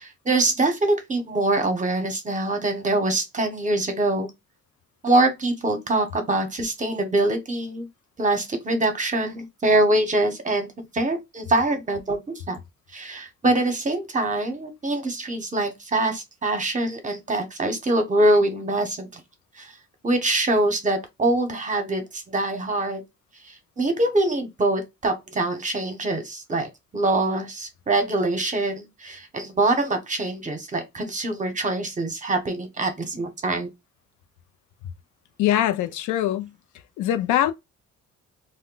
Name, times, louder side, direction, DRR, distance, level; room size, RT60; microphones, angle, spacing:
voice 1, 0.0-4.3 5.0-7.9 8.2-10.7 10.9-12.6 12.9-19.2 19.6-19.7 20.0-23.0 23.8-33.7, right 2 dB, 25° right, 0.8 m, -24 dB
voice 2, 35.4-36.6 37.0-37.5, left 12 dB, 80° left, 0.5 m, -22 dB
2.1 x 2.1 x 3.7 m
cardioid pair, 90°, 30 cm